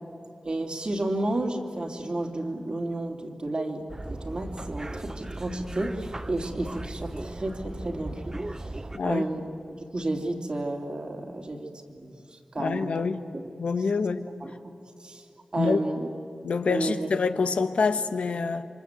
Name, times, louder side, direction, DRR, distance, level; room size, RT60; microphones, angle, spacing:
voice 1, 0.4-12.9 13.3-13.4 14.4-14.5 15.0-15.2 15.5-16.1 16.7-17.1, right 2 dB, 50° right, 3.0 m, -32 dB
sound 1, 3.9-9.0, right 2 dB, 25° right, 0.6 m, -37 dB
voice 2, 8.9-9.3 12.6-13.2 13.6-14.3 15.6-15.9 16.4-18.7, left 4 dB, 85° left, 1.1 m, -26 dB
28.5 x 24.5 x 8.2 m
wide cardioid pair, 60°, 2 cm